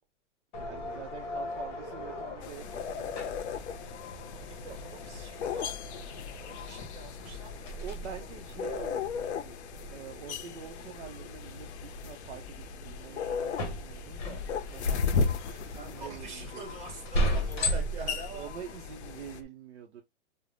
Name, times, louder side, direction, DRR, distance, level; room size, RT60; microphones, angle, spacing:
sound 1, 0.5-19.4, equal, 40° left, 0.7 m, -38 dB
voice 1, 0.6-3.1 7.8-9.5 9.9-14.4 14.7-15.1 15.6-16.3 16.5-16.6 18.3-20.0, right 8 dB, 65° right, 0.6 m, -46 dB
sound 2, 2.4-19.4, left 5 dB, 65° left, 0.5 m, -37 dB
voice 2, 4.3-8.3 15.4-18.5, right 3 dB, 40° right, 1.2 m, -46 dB
2.5 x 2.0 x 3.1 m
hypercardioid pair, 175°, 36 cm